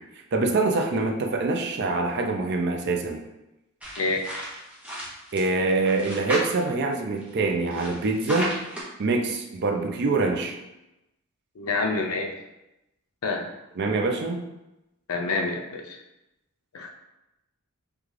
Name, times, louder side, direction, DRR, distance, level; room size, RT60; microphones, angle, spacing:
voice 1, 0.3-3.2 5.3-8.6 9.0-10.6 13.8-14.4, right 3 dB, 50° right, 3 dB, 0.4 m, -25 dB
sound 1, 3.8-5.4 5.7-6.8 7.2-8.8, right 1 dB, 5° right, 0.7 m, -34 dB
voice 2, 11.6-12.3 13.2-13.5 15.1-16.0 16.7-17.0, left 3 dB, 80° left, 3 dB, 0.5 m, -27 dB
3.7 x 2.3 x 3.2 m, 0.94 s
head